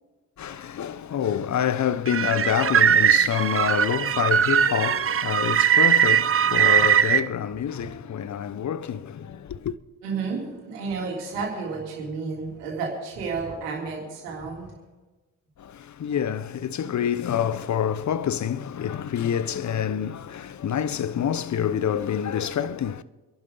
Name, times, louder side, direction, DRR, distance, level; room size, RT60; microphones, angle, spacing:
voice 1, 0.4-9.8 15.6-23.0, left 9 dB, 40° left, 0.8 m, -27 dB
sound 1, 2.1-7.2, right 9 dB, 30° right, 0.6 m, -20 dB
voice 2, 10.0-14.7, right 4 dB, 90° right, 3.4 m, -31 dB
27.0 x 11.0 x 3.9 m
hypercardioid pair, 50°, 45 cm